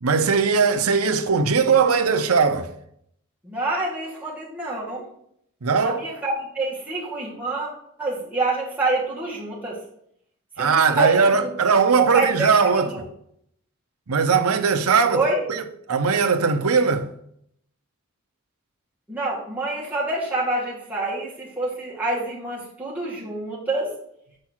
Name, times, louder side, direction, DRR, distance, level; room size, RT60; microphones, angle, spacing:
voice 1, 0.0-2.7 5.6-6.0 10.6-12.9 14.1-15.2 15.5-17.1, right 5 dB, 90° right, 0.8 m, -19 dB
voice 2, 3.4-5.1 5.8-7.7 8.0-9.8 10.6-11.5 11.9-13.1 15.0-15.5 19.1-23.9, right 2 dB, 10° right, 2.1 m, -27 dB
7.7 x 4.8 x 4.5 m
head